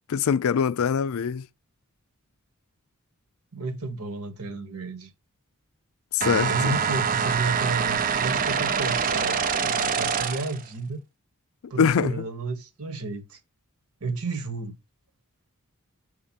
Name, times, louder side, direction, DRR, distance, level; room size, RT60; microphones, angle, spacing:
voice 1, 0.1-1.4 6.1-6.7 11.8-12.1, left 7 dB, 65° left, 0.4 m, -23 dB
voice 2, 3.5-5.1 6.5-11.0 11.7-13.4 14.0-14.8, right 3 dB, 70° right, 1.4 m, -32 dB
sound 1, 6.2-10.6, right 6 dB, 40° right, 0.5 m, -25 dB
6.6 x 3.2 x 5.7 m
head